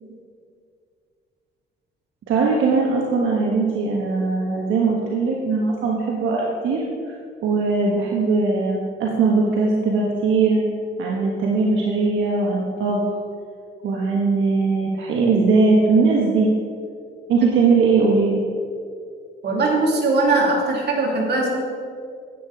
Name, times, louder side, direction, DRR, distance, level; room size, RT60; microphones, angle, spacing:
voice 1, 2.3-6.8 7.4-10.6 11.0-13.0 13.8-16.5 17.3-18.4, right 4 dB, 80° right, -2 dB, 1.3 m, -20 dB
voice 2, 19.4-21.5, right 2 dB, 55° right, -1 dB, 2.7 m, -20 dB
10.0 x 8.8 x 4.8 m, 2.3 s
cardioid pair, 90°, 20 cm